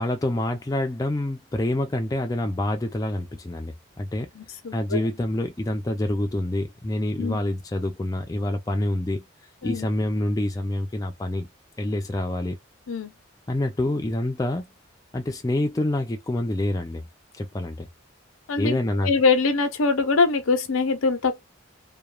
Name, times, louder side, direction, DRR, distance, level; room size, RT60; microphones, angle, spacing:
voice 1, 0.0-4.3 4.7-9.2 9.6-11.5 11.8-12.6 13.5-14.7 15.1-17.1 17.4-17.9 18.6-19.1, left 1 dB, 15° left, 0.3 m, -27 dB
voice 2, 4.4-5.0 7.2-7.4 9.6-9.9 12.9-13.1 18.5-18.8 19.0-21.4, left 4 dB, 90° left, 0.7 m, -23 dB
2.9 x 2.3 x 2.2 m
head